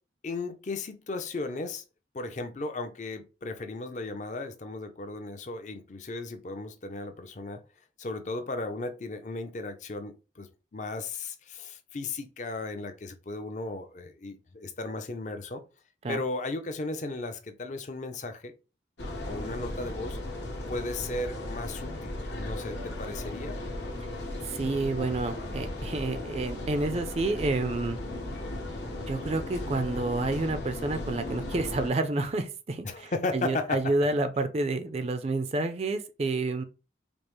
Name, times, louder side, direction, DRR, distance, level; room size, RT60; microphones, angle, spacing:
voice 1, 0.2-1.8 2.1-7.6 8.0-10.5 10.7-15.6 16.1-18.5 19.2-20.2 20.7-23.6 32.8-33.8, left 2 dB, 40° left, 0.5 m, -35 dB
sound 1, 19.0-31.9, left 1 dB, 75° left, 1.1 m, -36 dB
voice 2, 24.5-28.0 29.1-36.6, right 2 dB, 35° right, 0.4 m, -29 dB
5.2 x 2.0 x 3.0 m
head